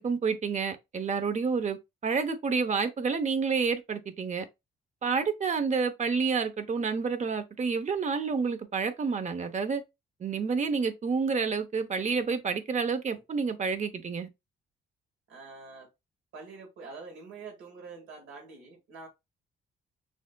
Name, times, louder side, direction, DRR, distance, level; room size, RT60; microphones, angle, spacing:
voice 1, 0.0-1.8 2.0-4.4 5.0-9.8 10.2-14.3, right 5 dB, 35° right, 0.8 m, -29 dB
voice 2, 15.3-15.9 16.3-19.1, right 4 dB, 80° right, 1.7 m, -45 dB
6.1 x 2.5 x 2.2 m
cardioid pair, 90°, 20 cm